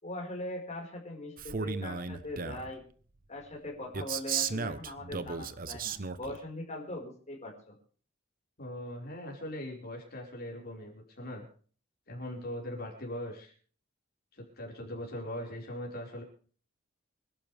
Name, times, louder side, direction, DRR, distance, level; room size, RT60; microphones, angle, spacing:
voice 1, 0.0-2.8 3.3-7.8, left 1 dB, 35° left, -1 dB, 5.2 m, -41 dB
Male speech man speaking, 1.4-2.7 3.9-6.4, right 5 dB, 45° right, 1.0 m, -35 dB
voice 2, 8.6-11.4 12.1-13.5 14.3-16.2, left 1 dB, 50° left, 0 dB, 5.2 m, -40 dB
26.5 x 12.0 x 3.5 m, 0.43 s
head